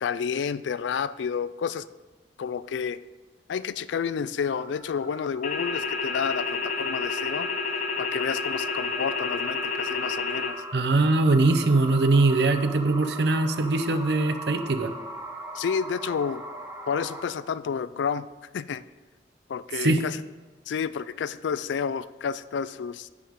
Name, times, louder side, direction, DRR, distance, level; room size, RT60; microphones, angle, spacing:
voice 1, 0.0-1.9 2.4-3.0 3.5-7.5 8.0-10.6 15.5-16.4 16.9-18.3 18.5-18.8 19.5-20.2 20.7-23.1, left 6 dB, 85° left, 16 dB, 0.3 m, -30 dB
sound 1, 4.4-17.2, right 1 dB, 15° right, 0.8 m, -41 dB
sound 2, 5.4-10.5, left 4 dB, 40° left, 0.8 m, -29 dB
voice 2, 10.7-14.9 19.8-20.0, right 2 dB, 70° right, 9 dB, 0.7 m, -22 dB
10.5 x 8.3 x 3.7 m, 1.3 s
head